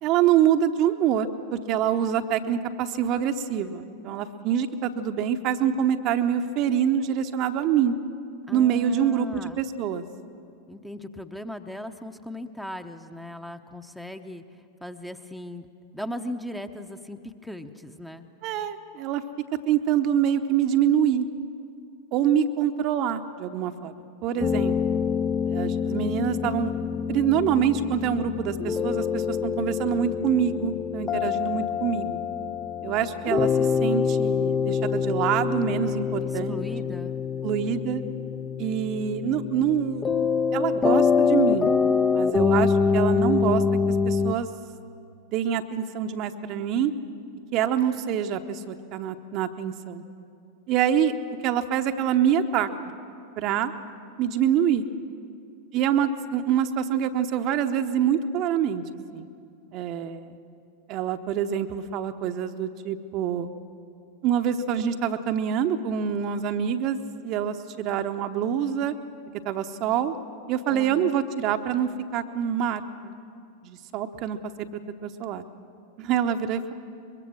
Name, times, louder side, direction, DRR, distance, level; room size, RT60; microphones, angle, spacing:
voice 1, 0.0-8.0 8.5-10.0 18.4-19.2 19.7-21.3 22.1-23.9 24.2-25.0 25.4-26.7 27.1-32.2 32.8-36.6 37.4-38.0 38.6-40.0 40.5-41.7 42.1-43.6 44.0-44.5 45.3-46.9 47.5-50.0 50.7-51.1 51.4-52.7 53.4-53.7 54.2-54.8 55.7-58.8 59.1-59.3 59.7-60.3 60.9-63.5 64.2-68.9 69.4-70.1 70.5-73.1 73.6-74.4 75.0-75.4 76.0-76.7, right 9 dB, 40° right, 7 dB, 0.9 m, -25 dB
voice 2, 8.5-9.6 10.7-14.4 14.8-15.7 15.9-18.3 36.2-37.2 70.7-71.2, left 1 dB, ahead, 7 dB, 0.9 m, -38 dB
sound 1, 24.4-44.3, left 6 dB, 20° left, 0.7 m, -25 dB
23.5 x 22.0 x 6.3 m, 2.4 s
figure-of-eight pair, 90°, 0 cm